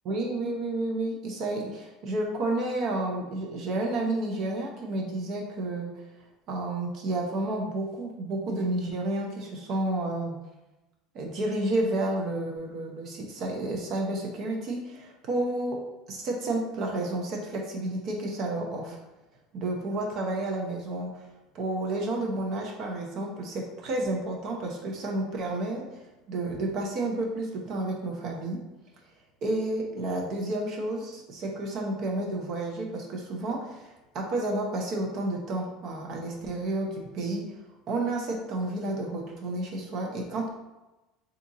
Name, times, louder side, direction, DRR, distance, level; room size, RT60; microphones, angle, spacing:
voice 1, 0.0-5.9 6.5-10.4 11.1-15.8 16.1-19.0 19.5-21.1 21.5-26.0 26.3-28.6 29.4-37.6 37.9-40.5, right 2 dB, 55° right, 0 dB, 0.7 m, -31 dB
2.9 x 2.5 x 3.7 m, 1.0 s
supercardioid pair, 95°, 0 cm